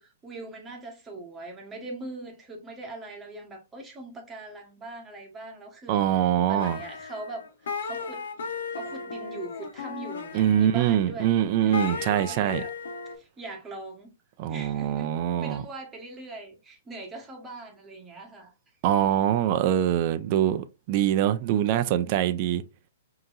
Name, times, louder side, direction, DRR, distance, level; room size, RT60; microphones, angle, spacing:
voice 1, 0.0-6.0 6.5-8.3 8.7-11.3 11.6-12.7 13.2-14.1 14.5-15.1 15.4-18.5, right 2 dB, 15° right, 1.3 m, -41 dB
voice 2, 5.9-6.8 10.3-12.6 14.4-15.6 18.8-22.6, right 11 dB, 40° right, 0.4 m, -24 dB
sound 1, 6.6-13.2, left 5 dB, 80° left, 1.2 m, -36 dB
5.2 x 2.9 x 2.5 m
hypercardioid pair, 145°, 0 cm